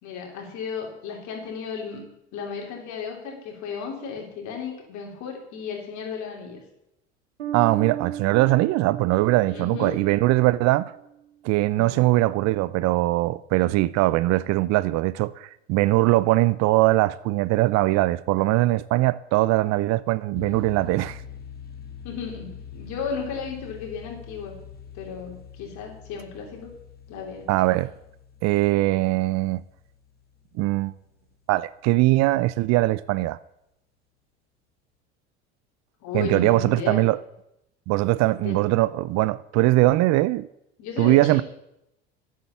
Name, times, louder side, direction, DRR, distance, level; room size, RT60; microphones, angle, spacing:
voice 1, 0.0-2.0 2.3-6.6 9.5-10.0 11.7-12.1 22.0-24.6 24.9-26.7 27.1-27.5 36.0-37.0 38.4-38.6 40.8-41.4, left 6 dB, 60° left, 3.5 m, -34 dB
Bass guitar, 7.4-10.9, right 10 dB, 90° right, 1.2 m, -36 dB
voice 2, 7.5-10.9 11.4-21.2 27.5-27.9 28.4-29.6 30.6-30.9 31.5-33.4 36.1-37.2 37.9-40.5 41.0-41.4, right 18 dB, 55° right, 0.5 m, -21 dB
sound 1, 20.3-31.2, left 8 dB, 30° left, 2.0 m, -44 dB
9.4 x 7.7 x 7.0 m
hypercardioid pair, 75°, 33 cm